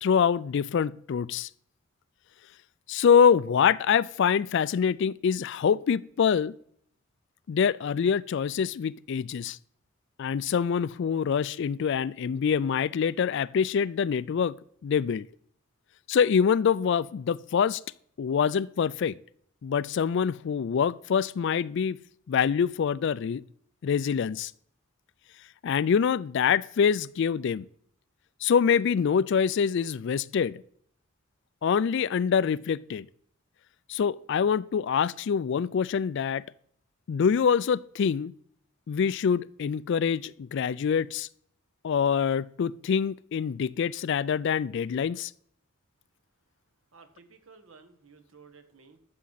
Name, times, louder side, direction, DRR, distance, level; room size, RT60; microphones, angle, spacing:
voice 1, 0.0-1.5 2.9-6.5 7.5-9.6 10.2-14.6 14.8-15.3 16.1-17.8 18.2-19.2 19.6-22.0 22.3-23.4 23.8-24.5 25.6-27.7 28.4-30.6 31.6-33.1 33.9-36.4 37.1-38.3 38.9-41.3 41.8-45.3, left 7 dB, 55° left, 0.3 m, -25 dB
voice 2, 46.9-49.0, right 4 dB, 70° right, 1.3 m, -54 dB
12.5 x 7.5 x 4.0 m
head